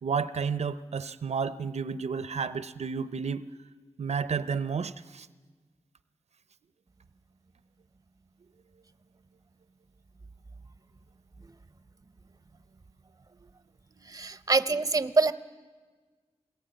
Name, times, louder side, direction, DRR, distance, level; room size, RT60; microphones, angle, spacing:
voice 1, 0.0-3.5 4.0-5.3, right 6 dB, 80° right, 14 dB, 0.6 m, -31 dB
voice 2, 14.1-15.3, right 3 dB, 30° right, 13 dB, 0.7 m, -25 dB
21.5 x 19.0 x 9.0 m, 1.4 s
wide cardioid pair, 100°, 11 cm